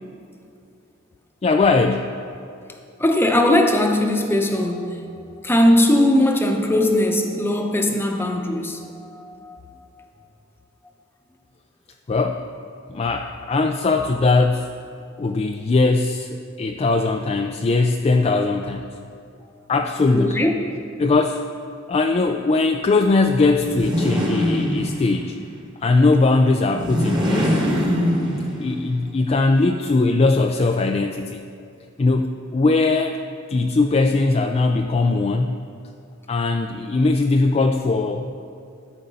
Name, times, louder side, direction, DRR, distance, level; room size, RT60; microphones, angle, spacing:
voice 1, 1.4-2.1 12.1-12.5 12.9-14.7 15.2-18.9 19.7-20.5 21.0-21.4 21.9-25.4 25.8-27.6 28.6-31.4 32.0-33.2 33.5-35.5 36.3-38.3, left 3 dB, 30° left, 4 dB, 0.3 m, -20 dB
voice 2, 3.0-9.6 20.1-20.5, left 1 dB, 10° left, 3 dB, 0.8 m, -20 dB
sound 1, 23.6-25.3 26.6-28.8, equal, 25° right, 1.5 m, -22 dB
12.5 x 5.2 x 6.9 m, 2.5 s
head